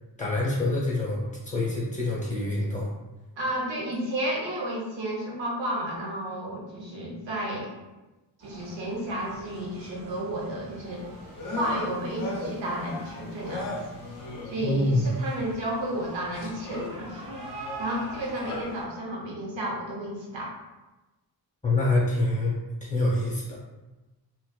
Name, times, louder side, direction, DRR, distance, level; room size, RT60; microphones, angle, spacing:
voice 1, 0.2-2.9 14.6-15.1 21.6-22.6 22.9-23.6, left 2 dB, 15° left, -5 dB, 0.8 m, -26 dB
voice 2, 3.4-7.8 8.4-11.0 11.5-13.7 14.4-20.5, right 1 dB, 90° right, -3 dB, 0.7 m, -32 dB
sound 1, 8.4-18.8, right 2 dB, 45° right, 0.9 m, -46 dB
sound 2, 10.9-15.5 16.0-18.6, left 2 dB, 45° left, 0.5 m, -38 dB
2.4 x 2.3 x 2.2 m, 1.1 s
cardioid pair, 80°, 44 cm